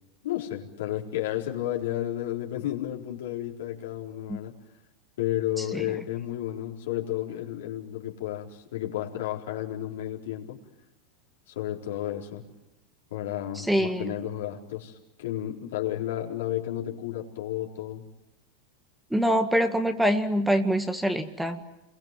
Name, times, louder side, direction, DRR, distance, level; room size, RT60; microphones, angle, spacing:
voice 1, 0.2-4.5 5.2-10.6 11.5-12.4 13.1-18.0, left 13 dB, 75° left, 0 dB, 4.2 m, -32 dB
voice 2, 13.6-14.1 19.1-21.6, equal, 5° right, 7 dB, 1.8 m, -25 dB
28.5 x 22.5 x 7.6 m, 0.96 s
hypercardioid pair, 105°, 0 cm